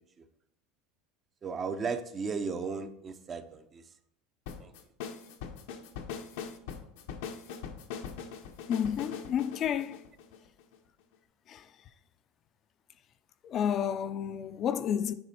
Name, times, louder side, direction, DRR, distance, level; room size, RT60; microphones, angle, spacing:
voice 1, 1.4-3.9 4.6-4.7, right 5 dB, 30° right, 0.6 m, -35 dB
sound 1, 4.5-10.8, left 7 dB, 80° left, 0.8 m, -41 dB
voice 2, 8.7-10.0 11.5-11.7 13.4-15.1, left 9 dB, 40° left, 0.5 m, -30 dB
9.7 x 3.4 x 4.3 m
supercardioid pair, 120°, 0 cm